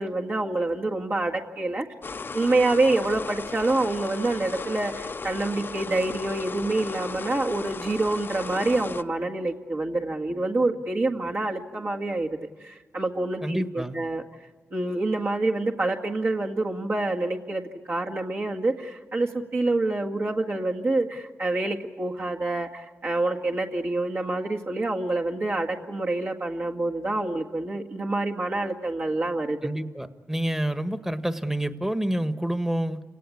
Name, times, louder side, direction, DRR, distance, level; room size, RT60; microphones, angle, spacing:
voice 1, 0.0-1.8 2.3-12.3 12.6-14.2 14.7-29.6, right 2 dB, 50° right, -2 dB, 1.9 m, -27 dB
sound 1, 2.0-9.0, left 4 dB, 45° left, 0.7 m, -36 dB
voice 2, 13.4-14.0 29.6-33.0, right 1 dB, 10° right, 9 dB, 1.4 m, -28 dB
29.0 x 18.0 x 8.6 m, 1.4 s
cardioid pair, 75°, 5 cm